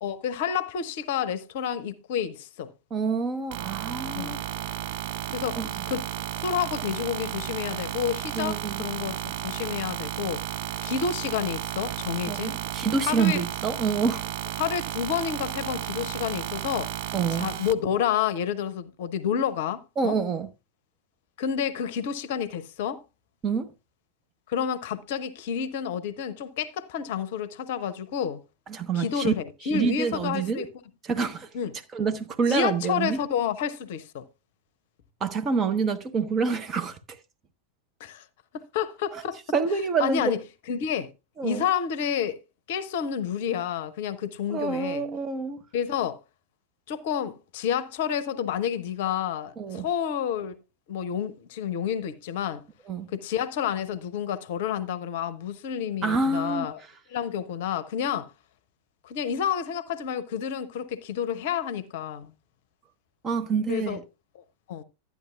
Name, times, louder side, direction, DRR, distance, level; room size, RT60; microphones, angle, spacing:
voice 1, 0.0-2.7 4.1-4.4 5.3-5.6 5.9-6.1 6.4-10.4 10.8-12.6 13.0-13.4 14.6-16.9 17.3-20.2 21.4-23.0 24.5-28.4 28.9-30.7 31.5-31.8 32.5-34.3 38.0-38.2 38.5-39.4 40.0-40.4 40.7-41.1 41.4-42.4 42.7-45.1 45.7-46.2 46.9-50.5 50.9-52.6 53.1-56.8 57.1-58.3 59.0-62.3 63.7-64.0 64.7-64.8, left 8 dB, 50° left, 0.7 m, -29 dB
voice 2, 2.9-4.4 5.6-5.7 8.3-8.8 12.3-14.3 17.1-17.5 20.0-20.5 23.4-23.7 28.7-29.3 29.7-30.7 31.0-31.5 31.9-33.2 35.2-37.0 39.1-39.2 39.5-40.4 41.4-41.6 44.5-45.6 49.6-49.9 52.9-53.1 56.0-56.7 63.2-64.0, right 5 dB, 25° right, 0.9 m, -27 dB
sound 1, 3.5-17.7, right 12 dB, 50° right, 0.5 m, -33 dB
12.0 x 9.4 x 2.4 m
figure-of-eight pair, 90°, 0 cm